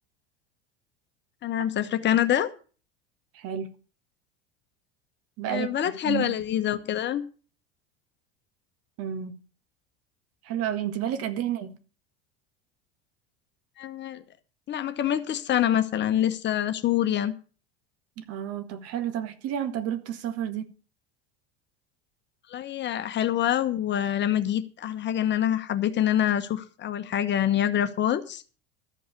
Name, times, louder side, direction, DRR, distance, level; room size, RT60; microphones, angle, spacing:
voice 1, 1.4-2.5 5.5-7.2 13.8-14.2 14.7-17.3 22.5-28.4, left 11 dB, 35° left, 1.1 m, -26 dB
voice 2, 3.3-3.7 5.4-6.4 9.0-9.4 10.4-11.7 18.2-20.7, right 10 dB, 50° right, 1.7 m, -31 dB
13.5 x 5.4 x 8.1 m
hypercardioid pair, 80°, 31 cm